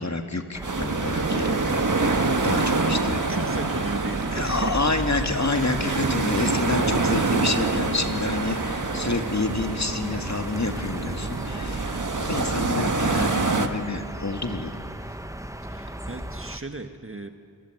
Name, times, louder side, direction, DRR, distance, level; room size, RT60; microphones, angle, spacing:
voice 1, 0.0-1.6 2.1-3.2 4.3-14.8, left 3 dB, 40° left, 5 dB, 2.2 m, -28 dB
sound 1, 0.5-16.6, right 1 dB, 10° right, 1.1 m, -36 dB
sound 2, 0.6-13.7, right 3 dB, 45° right, 1.7 m, -26 dB
voice 2, 3.3-4.9 15.6-17.3, right 3 dB, 30° right, 7 dB, 1.6 m, -36 dB
27.0 x 24.5 x 8.1 m, 2.2 s
wide cardioid pair, 70°, 41 cm